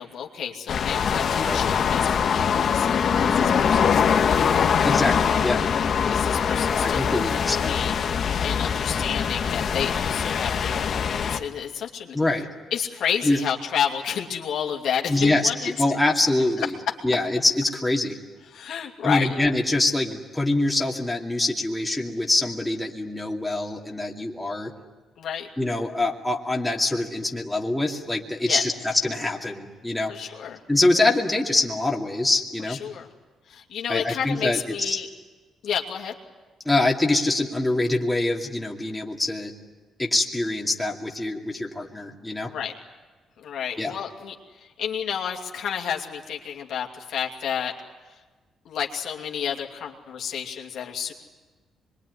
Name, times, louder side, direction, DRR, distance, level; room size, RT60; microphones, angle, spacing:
voice 1, 0.0-4.7 6.1-7.2 7.5-8.0 8.4-12.2 12.7-15.7 16.6-16.7 18.5-19.4 25.2-25.5 28.4-28.6 30.1-30.6 32.7-33.1 33.5-35.1 35.6-36.2 42.5-42.7 43.4-47.7 48.6-51.1, left 8 dB, 70° left, 1 dB, 2.7 m, -30 dB
sound 1, 0.7-11.4, left 7 dB, 55° left, 1.6 m, -23 dB
voice 2, 4.8-5.7 6.7-7.7 12.1-12.5 13.2-13.4 15.1-16.7 17.0-18.2 19.0-24.7 25.6-30.1 30.7-32.8 33.9-35.0 36.6-39.5 40.0-42.5 43.8-43.9, left 2 dB, 10° left, 0 dB, 2.6 m, -24 dB
25.5 x 22.5 x 9.7 m, 1.3 s
cardioid pair, 90°, 0 cm